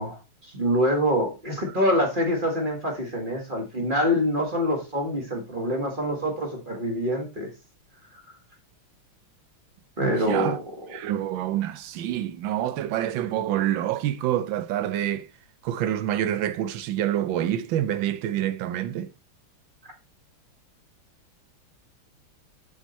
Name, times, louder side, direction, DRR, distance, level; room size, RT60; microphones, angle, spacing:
voice 1, 0.0-7.5 10.0-10.6 10.9-11.1, equal, 25° right, 1.7 m, -25 dB
voice 2, 10.0-10.6 10.9-15.3 15.6-19.1, right 11 dB, 70° right, 1.3 m, -27 dB
7.1 x 6.5 x 4.1 m
omnidirectional pair, 2.4 m